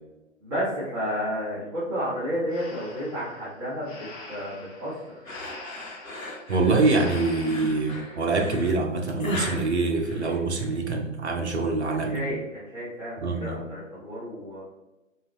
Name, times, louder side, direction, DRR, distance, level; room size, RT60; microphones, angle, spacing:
voice 1, 0.4-5.2 11.6-14.6, equal, 20° right, -11 dB, 1.4 m, -32 dB
Breathing, 2.5-8.0, left 2 dB, 5° left, 0.6 m, -44 dB
sound 1, 5.3-10.8, left 1 dB, 85° left, 1.2 m, -37 dB
voice 2, 6.5-12.2 13.2-13.6, right 3 dB, 55° right, 2 dB, 0.9 m, -25 dB
7.1 x 2.4 x 3.0 m, 1.0 s
figure-of-eight pair, 135°, 40 cm